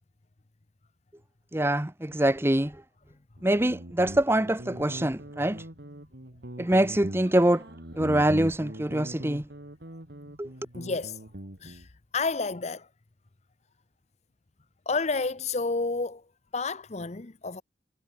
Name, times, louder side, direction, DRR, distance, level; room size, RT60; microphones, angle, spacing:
voice 1, 1.5-2.8 3.4-5.7 6.6-7.6 8.0-9.5 10.4-10.5, right 1 dB, 15° right, 0.9 m, -24 dB
Guitar, 3.4-11.9, right 1 dB, 60° right, 2.9 m, -41 dB
voice 2, 10.7-11.3 11.6-12.9 14.9-16.3 16.5-17.6, left 3 dB, 35° left, 0.8 m, -30 dB
head